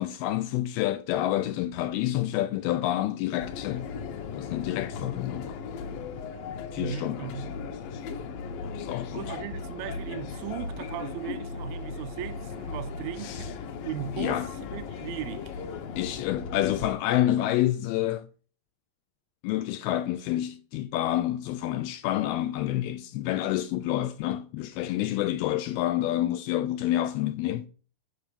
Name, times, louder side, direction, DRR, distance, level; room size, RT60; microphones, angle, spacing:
voice 1, 0.0-3.9 4.3-5.6 6.7-7.2 8.8-9.2 13.2-13.5 14.2-14.5 16.0-18.3 19.4-27.7, left 13 dB, 85° left, 2.2 m, -28 dB
sound 1, 3.4-16.9, left 5 dB, 70° left, 2.4 m, -37 dB
voice 2, 6.8-7.5 9.1-15.5, right 10 dB, 80° right, 2.2 m, -37 dB
9.4 x 5.9 x 6.9 m
omnidirectional pair, 5.0 m